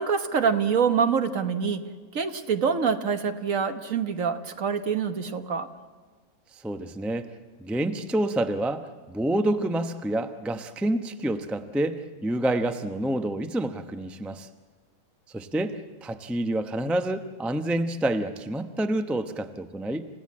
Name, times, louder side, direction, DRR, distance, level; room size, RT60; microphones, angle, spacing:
voice 1, 0.0-1.8 2.1-5.7, right 6 dB, 60° right, 8 dB, 1.6 m, -25 dB
voice 2, 6.5-7.3 7.6-14.5 15.3-20.1, right 1 dB, ahead, 8 dB, 0.6 m, -28 dB
28.5 x 16.0 x 8.5 m, 1.5 s
omnidirectional pair, 1.6 m